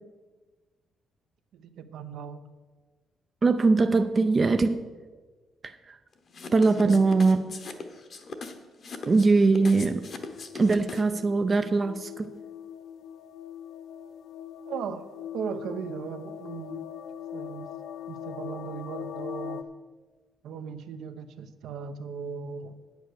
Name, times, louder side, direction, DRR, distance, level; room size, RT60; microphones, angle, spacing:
voice 1, 1.5-2.4 6.8-7.0 14.7-15.1 15.3-16.9 17.3-17.7 18.1-19.6 20.4-22.8, right 7 dB, 70° right, 9 dB, 0.8 m, -37 dB
voice 2, 3.4-4.8 5.6-6.0 6.5-7.4 9.1-10.1 10.5-12.3, right 3 dB, 25° right, 8 dB, 0.4 m, -22 dB
sound 1, 6.3-11.2, left 4 dB, 40° left, 0.9 m, -40 dB
sound 2, 9.7-19.6, left 9 dB, 65° left, 0.5 m, -41 dB
9.4 x 8.2 x 6.5 m, 1.4 s
cardioid pair, 160°, 0 cm